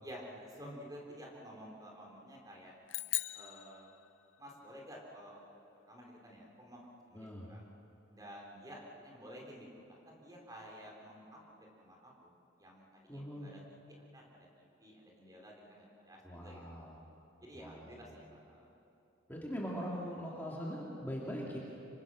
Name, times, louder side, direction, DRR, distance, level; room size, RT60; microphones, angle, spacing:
voice 1, 0.0-2.7 3.3-3.9 4.4-5.4 5.9-7.7 8.1-12.3 12.6-13.6 14.1-16.8 17.4-18.7, equal, 20° right, -1 dB, 4.0 m, -52 dB
sound 1, 2.9-4.5, left 17 dB, 70° left, 0.6 m, -40 dB
voice 2, 7.1-7.5 13.1-13.5 16.2-16.9 17.5-18.2 19.3-21.6, equal, 10° left, -4 dB, 2.5 m, -41 dB
26.5 x 24.0 x 6.4 m, 2.9 s
head